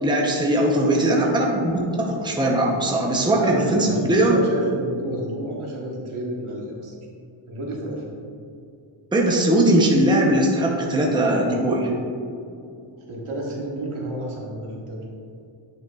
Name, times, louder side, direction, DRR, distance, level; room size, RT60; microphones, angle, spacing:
voice 1, 0.0-4.4 9.1-11.9, right 1 dB, 10° right, -1 dB, 0.7 m, -20 dB
voice 2, 3.4-6.9 7.5-8.0 13.1-15.0, right 1 dB, 75° right, -3 dB, 1.4 m, -30 dB
9.0 x 5.3 x 2.4 m, 2.5 s
wide cardioid pair, 120°, 50 cm